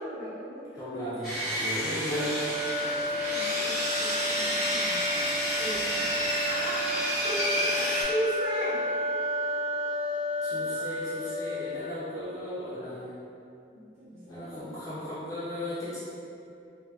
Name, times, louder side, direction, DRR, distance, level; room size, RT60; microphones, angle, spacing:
voice 1, 0.0-0.6 2.8-8.8 10.7-10.8 12.8-12.9 13.7-14.5, right 1 dB, 35° right, -14 dB, 1.1 m, -36 dB
voice 2, 0.7-2.4 10.4-13.2 14.3-16.0, left 1 dB, 20° left, -10 dB, 0.3 m, -36 dB
Sawing, 1.2-8.0, equal, ahead, 0.8 m, -30 dB
sound 1, 2.1-12.0, left 1 dB, 85° right, 1.0 m, -32 dB
2.5 x 2.5 x 2.2 m, 2.6 s
head